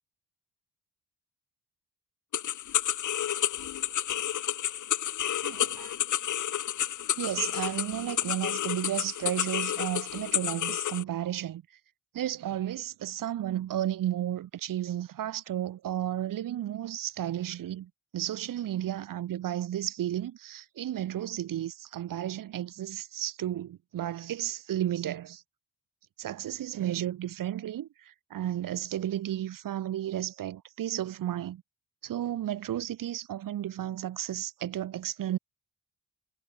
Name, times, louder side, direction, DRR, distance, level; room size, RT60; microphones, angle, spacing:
sound 1, 2.3-11.0, left 11 dB, 45° left, 0.6 m, -30 dB
voice 1, 5.4-5.9 7.2-11.6 12.1-25.4 26.2-31.6 32.0-35.4, right 12 dB, 50° right, 0.6 m, -33 dB
supercardioid pair, 55°, 42 cm